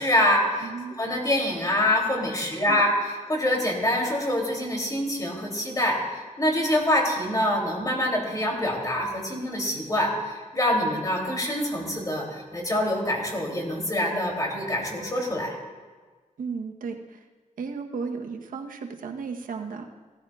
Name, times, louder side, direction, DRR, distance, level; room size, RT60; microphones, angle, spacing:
voice 1, 0.0-0.7 1.0-15.5, left 1 dB, 25° left, -1 dB, 2.9 m, -25 dB
voice 2, 0.6-1.0 2.4-2.8 16.4-17.2 17.6-19.9, right 5 dB, 90° right, 4 dB, 1.0 m, -35 dB
16.5 x 13.5 x 2.3 m, 1.4 s
wide cardioid pair, 90°, 14 cm